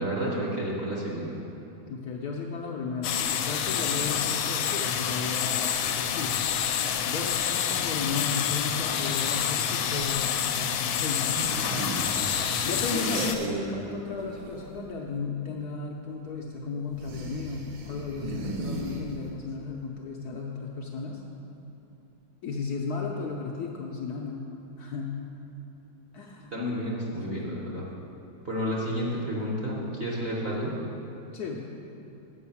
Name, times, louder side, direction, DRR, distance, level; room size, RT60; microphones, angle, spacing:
voice 1, 0.0-1.4 13.4-13.6 26.5-27.8 28.4-30.7, equal, 40° right, -4 dB, 0.9 m, -31 dB
voice 2, 1.8-6.4 7.0-11.4 12.6-21.2 22.4-24.4 24.8-25.2 26.1-26.6 27.1-27.4 31.3-31.7, left 4 dB, 65° left, -1 dB, 1.0 m, -34 dB
sound 1, 3.0-13.4, left 8 dB, 85° left, 1.4 m, -28 dB
sound 2, 11.3-13.9 14.1-14.9 16.9-19.4, right 2 dB, 80° right, 1.6 m, -36 dB
7.9 x 5.4 x 7.0 m, 2.9 s
omnidirectional pair, 2.2 m